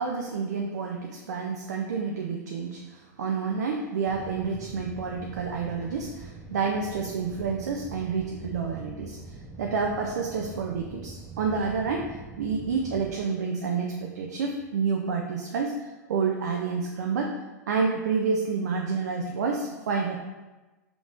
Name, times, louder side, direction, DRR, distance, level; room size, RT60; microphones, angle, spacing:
voice 1, 0.0-9.2 9.6-15.7 16.1-17.3 17.7-20.2, right 5 dB, 70° right, 0 dB, 0.5 m, -29 dB
sound 1, 4.1-13.1, right 3 dB, 15° right, 0.6 m, -43 dB
4.7 x 3.7 x 2.5 m, 1.1 s
figure-of-eight pair, 95°, 10 cm